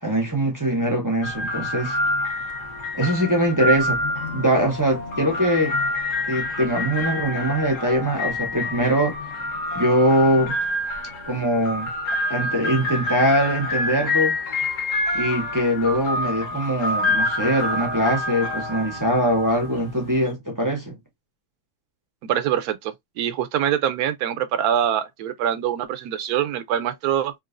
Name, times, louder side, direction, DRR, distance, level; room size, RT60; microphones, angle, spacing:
voice 1, 0.0-2.0 2.9-4.0 4.3-5.7 6.3-9.1 9.7-10.5 11.3-11.9 12.3-14.4 15.1-21.0, equal, 25° right, 0.4 m, -22 dB
sound 1, 1.2-20.3, left 2 dB, 60° left, 1.2 m, -27 dB
voice 2, 22.2-27.3, right 10 dB, 80° right, 1.1 m, -24 dB
3.7 x 2.4 x 2.5 m
omnidirectional pair, 1.7 m